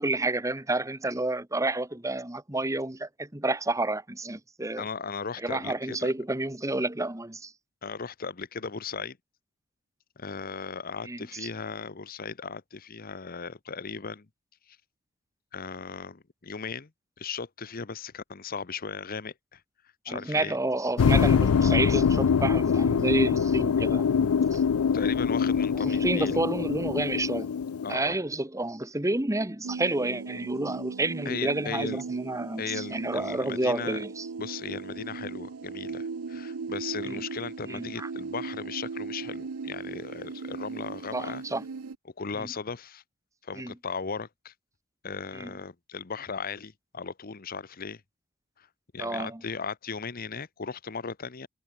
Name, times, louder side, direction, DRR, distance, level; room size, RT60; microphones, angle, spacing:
voice 1, 0.0-4.9 5.4-7.5 11.0-11.5 20.1-24.6 25.7-27.5 27.9-34.3 37.0-37.2 37.7-38.1 41.1-41.6 42.4-42.5 43.5-43.7 45.3-45.6 49.0-49.4, right 2 dB, 15° right, 1.4 m, -30 dB
voice 2, 4.8-6.1 7.8-9.2 10.2-14.3 15.5-16.9 17.2-19.6 20.0-20.6 24.9-26.4 27.8-28.2 31.2-32.0 32.6-34.0 34.4-41.4 42.2-43.0 43.4-44.5 45.0-48.0 48.6-48.7 48.9-51.5, left 5 dB, 40° left, 0.8 m, -37 dB
sound 1, 21.0-27.9, left 6 dB, 85° left, 0.4 m, -24 dB
sound 2, 29.6-42.0, right 4 dB, 85° right, 0.7 m, -38 dB
head